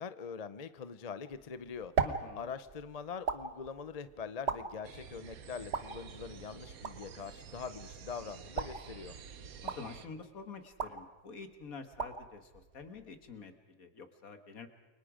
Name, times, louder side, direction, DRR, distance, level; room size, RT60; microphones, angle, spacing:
voice 1, 0.0-1.9 2.4-9.2, left 6 dB, 40° left, 13 dB, 0.6 m, -43 dB
sound 1, 1.3-13.5, right 5 dB, 45° right, 1.3 m, -41 dB
voice 2, 2.0-2.5 9.6-14.7, left 4 dB, 60° left, 8 dB, 2.1 m, -48 dB
sound 2, 4.8-10.1, right 7 dB, 65° right, 1.4 m, -50 dB
29.5 x 23.5 x 5.0 m, 1.1 s
omnidirectional pair, 1.7 m